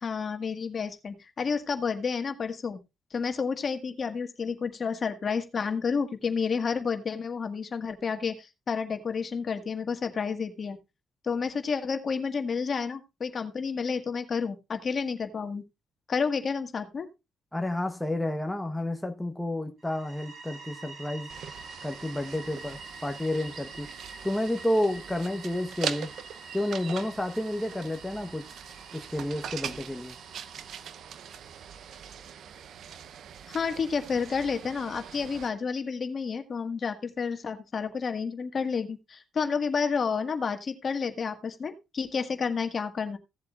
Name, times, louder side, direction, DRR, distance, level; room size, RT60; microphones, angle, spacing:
voice 1, 0.0-2.8 3.1-10.8 11.2-15.6 16.1-17.1 33.5-43.2, left 5 dB, 45° left, 1.6 m, -30 dB
voice 2, 17.5-21.3 21.8-23.9 24.2-26.1 26.5-28.6 28.9-30.2, left 1 dB, 5° left, 1.0 m, -30 dB
sound 1, 19.8-32.5, right 3 dB, 50° right, 2.0 m, -48 dB
sound 2, 21.3-35.5, right 8 dB, 70° right, 0.7 m, -42 dB
16.5 x 7.6 x 2.4 m
cardioid pair, 90°, 0 cm